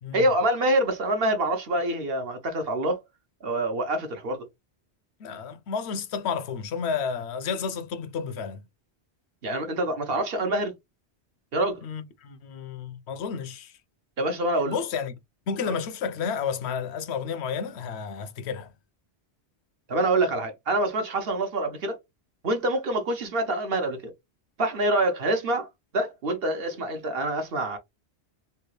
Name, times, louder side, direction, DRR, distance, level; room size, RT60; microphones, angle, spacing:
voice 1, 0.1-3.0 3.4-4.4 9.4-10.7 11.5-11.8 14.2-14.8 15.7-15.8 19.9-22.0 22.4-24.1 24.6-25.7 25.9-27.8, right 1 dB, 60° right, 1.1 m, -26 dB
voice 2, 5.2-8.6 11.8-13.7 14.7-15.1 15.5-18.7, left 6 dB, 75° left, 0.8 m, -31 dB
3.3 x 2.3 x 3.1 m
omnidirectional pair, 1.1 m